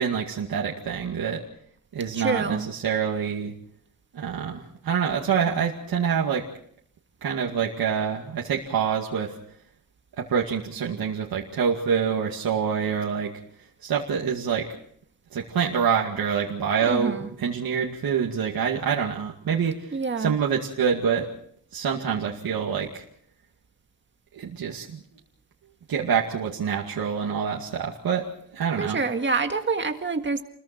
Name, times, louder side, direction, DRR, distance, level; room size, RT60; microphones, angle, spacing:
voice 1, 0.0-1.4 1.9-3.5 4.1-6.5 7.2-9.3 10.2-13.3 13.8-14.7 15.3-21.3 21.7-23.0 24.3-25.0 25.9-28.3 28.5-29.0, right 7 dB, 85° right, -1 dB, 2.3 m, -26 dB
voice 2, 2.1-2.7 16.9-17.3 19.9-20.3 28.8-30.4, right 4 dB, 30° right, 6 dB, 1.8 m, -26 dB
29.0 x 21.5 x 4.5 m, 0.64 s
wide cardioid pair, 160°, 35 cm